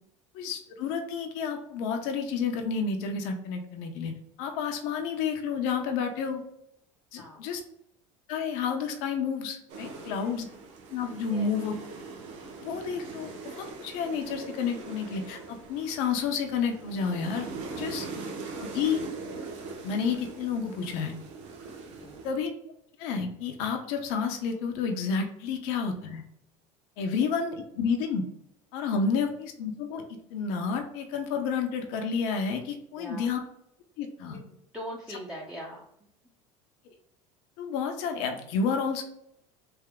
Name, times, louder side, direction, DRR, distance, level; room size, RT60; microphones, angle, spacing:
voice 1, 0.3-4.1 4.4-6.4 7.1-7.6 8.3-10.5 10.9-11.7 12.6-17.5 17.8-18.0 18.6-19.0 19.8-21.1 22.2-22.5 23.0-26.2 27.0-28.2 28.7-30.0 30.3-33.4 34.0-34.4 37.6-39.0, left 6 dB, 75° left, 4 dB, 0.8 m, -30 dB
voice 2, 7.2-7.6 10.0-10.4 11.3-11.5 22.0-22.2 27.2-27.3 33.0-33.3 34.3-35.8, equal, 5° right, -5 dB, 0.8 m, -42 dB
sound 1, 9.7-22.3, right 4 dB, 80° right, 1.0 m, -41 dB
3.4 x 2.8 x 3.5 m, 0.75 s
supercardioid pair, 100°, 15 cm